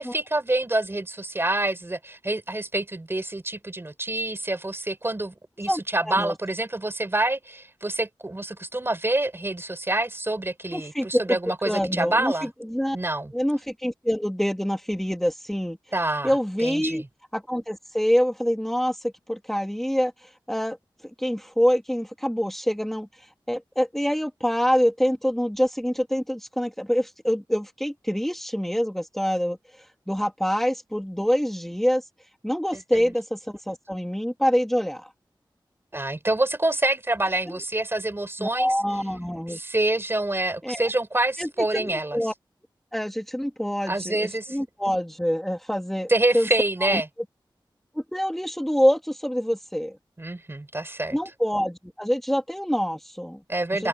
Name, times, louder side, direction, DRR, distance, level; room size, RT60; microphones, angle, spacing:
voice 1, 0.0-12.5 12.9-13.3 15.9-16.3 16.6-17.1 32.7-32.8 35.9-38.7 39.5-42.2 43.9-44.6 46.1-47.1 50.2-51.2 53.5-53.9, right 2 dB, 25° right, 3.7 m, -26 dB
voice 2, 5.7-6.3 10.7-11.4 11.6-13.0 13.3-15.8 16.2-17.0 17.3-20.8 21.2-32.0 32.4-35.1 37.5-37.6 38.4-39.6 40.6-40.9 41.4-41.5 41.7-42.3 42.9-46.5 46.8-47.0 47.9-50.0 51.1-53.4 53.7-53.9, equal, 5° left, 1.6 m, -26 dB
open air
wide cardioid pair, 90°, 9 cm